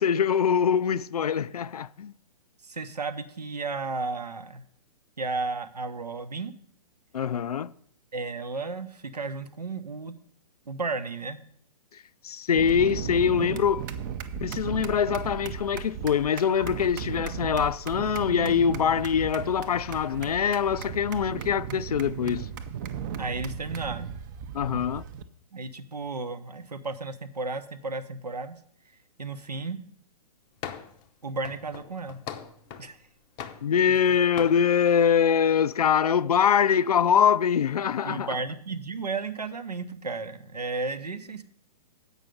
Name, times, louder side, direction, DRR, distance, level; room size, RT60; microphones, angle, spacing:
voice 1, 0.0-2.1 7.1-7.7 12.2-13.8 14.4-22.5 24.5-25.0 33.6-38.3, left 7 dB, 70° left, 0.4 m, -23 dB
voice 2, 2.6-4.6 5.2-6.5 8.1-10.1 10.7-11.4 23.2-24.1 25.5-28.6 29.2-29.8 31.2-32.2 32.8-33.0 38.0-41.4, right 3 dB, 85° right, 0.8 m, -33 dB
sound 1, 12.5-25.2, right 7 dB, 30° right, 0.6 m, -36 dB
sound 2, 30.6-31.0 31.4-32.9 33.4-34.1 34.4-34.6, left 9 dB, 25° left, 0.6 m, -40 dB
8.1 x 5.4 x 7.6 m
figure-of-eight pair, 120°, 20 cm